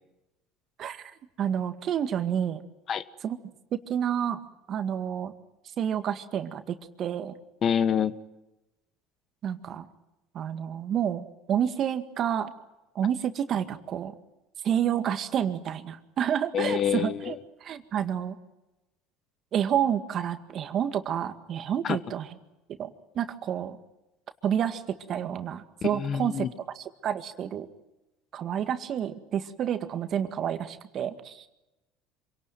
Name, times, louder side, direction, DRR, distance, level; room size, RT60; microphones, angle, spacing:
voice 1, 0.8-1.1 1.4-2.6 3.2-3.4 3.7-4.4 4.7-5.3 5.8-7.4 9.4-9.9 10.3-12.5 13.0-14.1 14.6-18.4 19.5-22.4 22.8-23.8 24.4-24.8 25.1-26.5 26.7-27.7 28.3-31.5, right 9 dB, 50° right, 9 dB, 1.9 m, -29 dB
voice 2, 7.6-8.1 16.5-17.3 21.8-22.0 25.8-26.5, left 8 dB, 45° left, 14 dB, 1.3 m, -26 dB
26.5 x 18.5 x 9.2 m, 0.99 s
hypercardioid pair, 80°, 0 cm